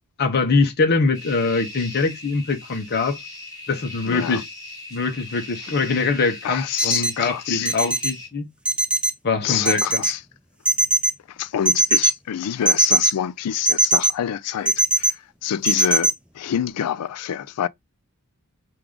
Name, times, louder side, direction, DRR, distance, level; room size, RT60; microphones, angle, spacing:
voice 1, 0.2-3.2 3.7-4.5 4.9-8.5 9.2-10.0, left 4 dB, 45° left, 0.7 m, -23 dB
sound 1, 1.1-8.3, left 2 dB, 15° left, 1.7 m, -39 dB
voice 2, 4.1-4.4 6.4-7.7 9.4-10.2 11.3-17.7, left 9 dB, 85° left, 0.4 m, -27 dB
sound 2, 6.8-7.1 7.7-8.1 8.7-9.1 9.7-10.1 10.7-11.1 11.7-12.1 12.7-13.1 13.7-14.1 14.7-15.1 15.7-16.1, right 1 dB, 5° right, 0.4 m, -18 dB
4.7 x 2.3 x 3.7 m
head